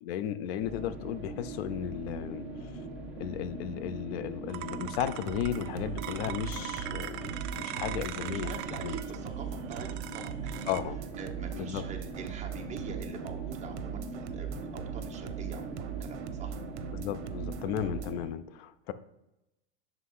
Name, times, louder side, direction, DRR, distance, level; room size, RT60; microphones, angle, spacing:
voice 1, 0.0-2.5 2.7-2.8 3.2-8.5 8.8-9.0 10.7-11.0 11.5-11.8 16.9-18.9, left 10 dB, 60° left, 13 dB, 0.6 m, -35 dB
sound 1, 0.6-18.3, right 2 dB, 5° right, 1.5 m, -42 dB
sound 2, 4.5-10.8, right 14 dB, 45° right, 0.4 m, -41 dB
sound 3, 5.2-18.1, right 10 dB, 80° right, 0.7 m, -40 dB
voice 2, 8.3-10.7 11.2-16.6, right 5 dB, 20° right, 3 dB, 0.9 m, -44 dB
5.8 x 3.7 x 5.5 m, 0.91 s
supercardioid pair, 135°, 34 cm